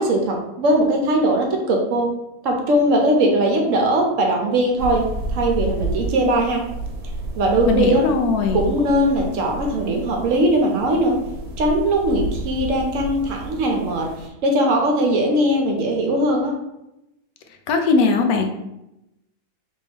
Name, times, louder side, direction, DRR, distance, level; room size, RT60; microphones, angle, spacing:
voice 1, 0.0-2.1 2.4-5.1 5.3-6.6 7.4-8.0 8.5-11.2 11.6-14.1 14.4-16.5, right 1 dB, 65° right, 1 dB, 1.0 m, -20 dB
sound 1, 4.8-14.3, right 1 dB, 90° right, 1.1 m, -31 dB
voice 2, 7.7-8.7 17.7-18.5, left 4 dB, 90° left, 5 dB, 1.1 m, -19 dB
3.3 x 2.6 x 3.4 m, 0.90 s
omnidirectional pair, 1.5 m